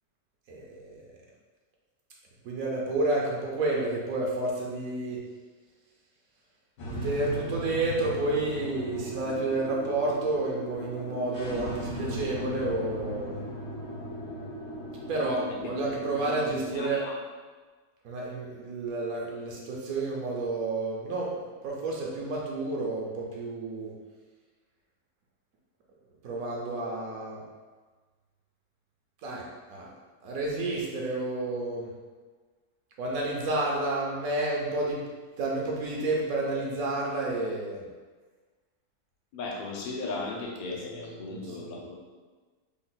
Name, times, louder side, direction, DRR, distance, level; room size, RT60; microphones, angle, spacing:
voice 1, 0.5-1.0 2.4-5.2 6.9-13.4 15.1-17.1 18.0-24.0 26.2-27.4 29.2-29.9 30.2-31.9 33.0-35.0 35.4-37.9 41.0-41.7, right 2 dB, 75° right, -3 dB, 1.1 m, -30 dB
sound 1, 6.8-16.8, equal, 90° left, 1.3 m, -37 dB
voice 2, 16.7-17.1 39.3-42.0, left 3 dB, 60° left, -1 dB, 0.5 m, -36 dB
3.5 x 2.3 x 3.8 m, 1.4 s
omnidirectional pair, 1.5 m